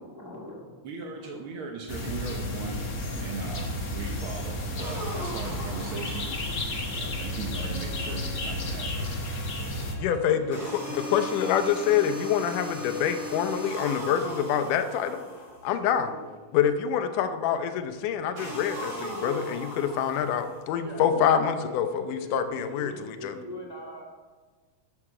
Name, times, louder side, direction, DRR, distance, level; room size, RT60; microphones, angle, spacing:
voice 1, 0.0-0.8 10.0-11.7 13.1-13.2 15.2-15.3 15.9-16.3 20.8-21.4 21.6-21.8 22.1-24.1, left 1 dB, 10° right, -3 dB, 1.3 m, -42 dB
voice 2, 0.8-2.8 3.2-6.3 7.0-9.3, right 4 dB, 65° right, 1 dB, 1.3 m, -38 dB
sound 1, 1.9-9.9, left 1 dB, 45° left, 1.1 m, -32 dB
sound 2, 4.8-6.8 10.5-15.8 18.4-20.8, equal, 40° right, 5.2 m, -38 dB
Bowed string instrument, 6.9-12.3, left 1 dB, 70° left, 2.6 m, -48 dB
voice 3, 10.0-15.2 15.6-16.1 16.5-23.3, left 8 dB, 85° left, 9 dB, 2.3 m, -26 dB
12.0 x 8.6 x 4.9 m, 1.3 s
omnidirectional pair, 3.6 m